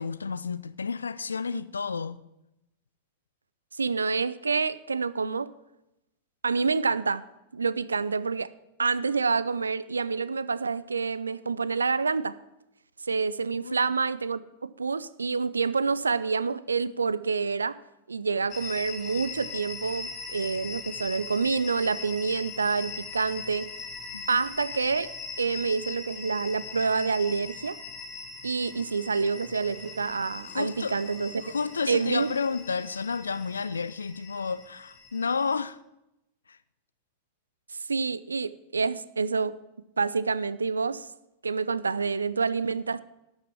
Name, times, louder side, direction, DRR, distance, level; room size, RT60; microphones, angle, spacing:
voice 1, 0.0-2.2 13.5-13.9 24.1-24.4 30.5-31.0 31.4-35.8 36.5-36.6, left 5 dB, 75° left, 0.3 m, -31 dB
voice 2, 3.7-5.5 6.4-7.2 7.5-8.5 8.8-12.4 13.1-17.8 18.1-23.7 24.3-25.1 25.4-27.8 28.4-31.5 31.9-32.3 37.7-39.5 40.0-41.1 41.4-43.0, right 4 dB, 75° right, 0.4 m, -27 dB
sound 1, 18.5-35.6, left 5 dB, 35° left, 1.7 m, -41 dB
sound 2, 28.6-33.7, right 1 dB, 5° right, 1.8 m, -54 dB
11.5 x 6.4 x 7.4 m
figure-of-eight pair, 90°, 0 cm